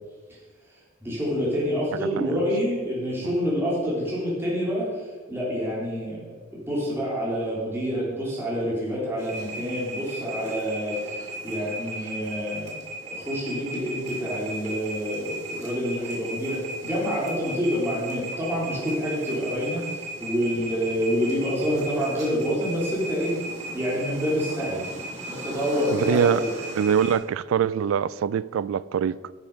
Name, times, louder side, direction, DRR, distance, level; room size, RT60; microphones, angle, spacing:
voice 1, 1.0-12.7 13.0-24.9 25.2-26.5, equal, 10° right, 3.1 m, -27 dB
sound 1, 9.2-27.2, right 1 dB, 35° right, 2.2 m, -36 dB
voice 2, 25.9-26.4 26.8-29.3, right 8 dB, 85° right, 0.3 m, -23 dB
10.5 x 7.2 x 5.3 m
head